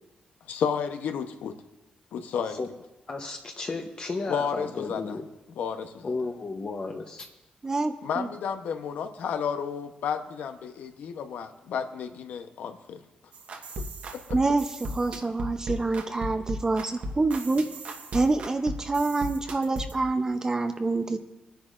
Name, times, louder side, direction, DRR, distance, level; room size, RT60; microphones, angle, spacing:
voice 1, 0.5-1.5 2.1-2.6 4.2-5.2 5.6-6.1 8.0-13.0 14.1-14.2, left 7 dB, 85° left, 7 dB, 0.8 m, -32 dB
voice 2, 3.1-5.2 6.0-7.3, left 3 dB, 35° left, 2 dB, 0.9 m, -33 dB
voice 3, 7.6-8.3 14.3-17.6 18.1-21.3, right 3 dB, 25° right, 7 dB, 0.6 m, -26 dB
sound 1, 13.3-20.0, right 1 dB, 60° right, 1.3 m, -37 dB
27.0 x 10.5 x 2.5 m, 1.0 s
cardioid pair, 130°, 3 cm